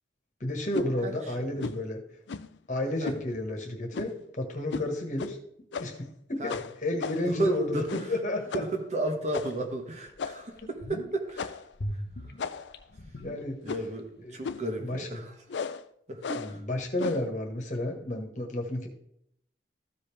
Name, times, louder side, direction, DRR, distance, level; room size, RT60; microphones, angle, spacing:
voice 1, 0.4-2.0 2.7-5.4 5.8-6.5 6.8-8.4 10.6-10.7 13.2-13.6 14.2-14.4 14.8-15.1 16.4-18.9, left 1 dB, 45° left, 3 dB, 1.5 m, -31 dB
sound 1, 0.7-0.9 1.6-1.8 2.3-2.6 3.0-3.2 3.9-4.2 4.7-4.9 5.2-5.3 5.7-6.1 6.5-7.4 7.9-8.2 8.5-8.7 9.3-9.6 10.2-10.6 11.4-11.7 12.4-12.8 13.6-14.0 14.4-14.7 15.5-15.8 16.2-16.6 17.0-17.3, left 5 dB, 90° left, 0.5 m, -36 dB
voice 2, 1.0-1.5 3.0-3.1 6.4-6.6 7.2-8.1 8.5-11.6 11.9-12.4 13.6-15.3 16.1-16.6, right 1 dB, 40° right, 3 dB, 1.4 m, -33 dB
sound 2, 9.5-9.6 10.1-10.2 10.5-11.3 11.7-14.0 14.3-14.4, equal, 60° left, 0.8 m, -39 dB
14.0 x 5.2 x 3.4 m, 0.74 s
head